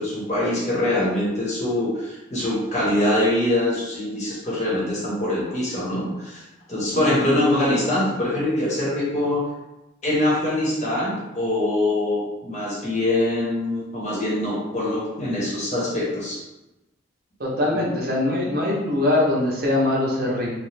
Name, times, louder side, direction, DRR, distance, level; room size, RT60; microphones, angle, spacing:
voice 1, 0.0-9.4 10.0-16.4 17.7-17.8, left 1 dB, 35° left, -6 dB, 0.9 m, -23 dB
voice 2, 6.9-7.5 17.4-20.5, left 1 dB, 50° right, -4 dB, 0.6 m, -23 dB
2.9 x 2.1 x 3.2 m, 1.0 s
head